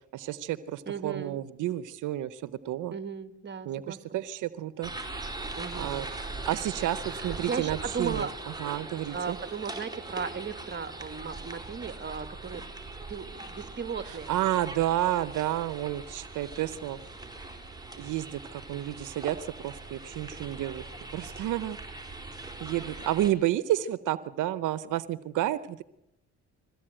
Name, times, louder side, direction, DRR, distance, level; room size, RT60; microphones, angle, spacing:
voice 1, 0.1-2.9 3.7-4.9 5.8-6.1 6.5-8.3 8.6-9.4 14.3-17.0 18.0-20.8 21.1-21.8 22.6-25.8, right 13 dB, 85° right, 15 dB, 0.8 m, -30 dB
voice 2, 0.9-1.4 2.9-4.2 5.6-6.0 7.0-8.3 9.1-12.6 13.1-14.3, right 6 dB, 35° right, 11 dB, 1.7 m, -36 dB
sound 1, 4.8-23.3, right 2 dB, 15° right, 4.3 m, -41 dB
22.0 x 15.5 x 8.9 m, 0.88 s
cardioid pair, 90°, 30 cm